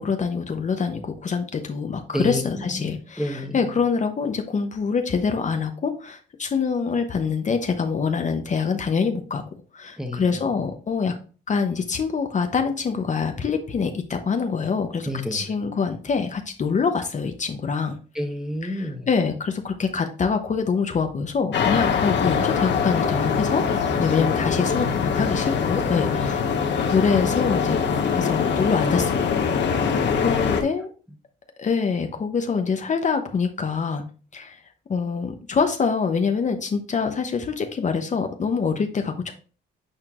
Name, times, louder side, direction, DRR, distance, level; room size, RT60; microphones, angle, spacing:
voice 1, 0.0-9.4 9.7-11.1 11.5-17.9 18.6-23.6 24.0-26.4 26.8-29.3 30.1-30.9 31.6-34.0 34.3-34.6 34.9-39.3, left 5 dB, 40° left, 6 dB, 0.7 m, -25 dB
voice 2, 2.1-2.6 3.2-3.8 10.0-10.4 15.1-15.5 18.1-19.1 29.7-30.1, left 1 dB, ahead, 5 dB, 1.1 m, -30 dB
sound 1, 21.5-30.6, left 6 dB, 65° left, 1.2 m, -23 dB
8.9 x 4.3 x 2.5 m, 0.38 s
cardioid pair, 90°, 20 cm